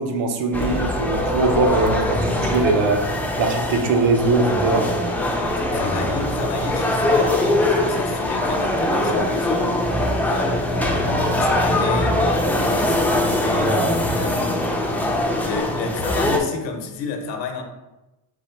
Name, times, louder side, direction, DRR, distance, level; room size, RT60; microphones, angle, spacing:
voice 1, 0.0-3.1 3.4-4.9, right 3 dB, 75° right, 3 dB, 0.9 m, -21 dB
sound 1, 0.5-16.4, left 1 dB, 5° left, 0.3 m, -22 dB
voice 2, 5.6-9.8 10.2-13.8 14.2-14.8 15.4-17.6, left 4 dB, 65° left, 4 dB, 0.8 m, -31 dB
4.0 x 2.9 x 4.4 m, 1.0 s
cardioid pair, 145°, 46 cm